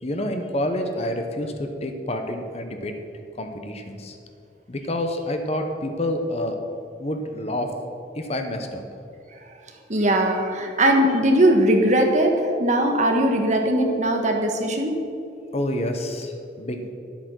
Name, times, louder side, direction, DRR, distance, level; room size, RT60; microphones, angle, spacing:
voice 1, 0.0-2.9 3.4-4.2 4.7-6.6 7.0-7.7 8.1-8.8 15.5-16.9, left 1 dB, 35° left, 5 dB, 0.9 m, -28 dB
voice 2, 9.9-15.0, right 1 dB, 40° right, 3 dB, 1.3 m, -20 dB
10.5 x 8.2 x 6.3 m, 2.6 s
head